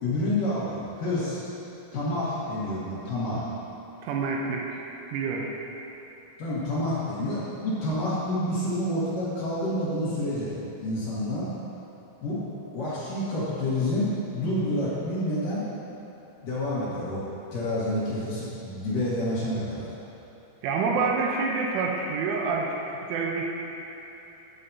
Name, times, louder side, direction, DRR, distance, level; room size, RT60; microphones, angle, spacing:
voice 1, 0.0-1.4 1.9-3.4 6.4-10.5 10.8-11.5 12.2-12.4 12.7-15.6 16.4-17.2 17.5-19.9, left 1 dB, 60° left, -10 dB, 2.4 m, -28 dB
voice 2, 4.0-4.8 5.1-5.5 20.6-22.8 23.1-23.5, right 4 dB, 80° right, -1 dB, 3.2 m, -27 dB
13.5 x 9.5 x 2.8 m, 3.0 s
omnidirectional pair, 5.8 m